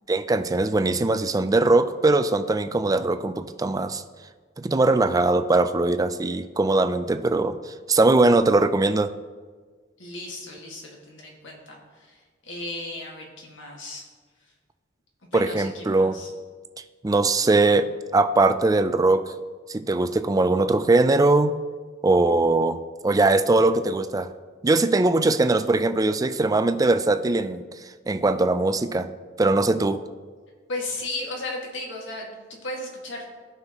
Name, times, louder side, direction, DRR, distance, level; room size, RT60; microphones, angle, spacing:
voice 1, 0.1-4.0 4.6-9.1 15.3-16.2 17.0-19.3 19.7-21.5 22.0-24.3 24.6-27.6 28.1-29.1 29.4-30.0, right 2 dB, 20° right, 10 dB, 0.4 m, -21 dB
voice 2, 10.0-14.1 15.3-16.3 30.7-33.3, left 2 dB, 85° left, -1 dB, 2.0 m, -35 dB
16.5 x 5.7 x 3.1 m, 1.5 s
head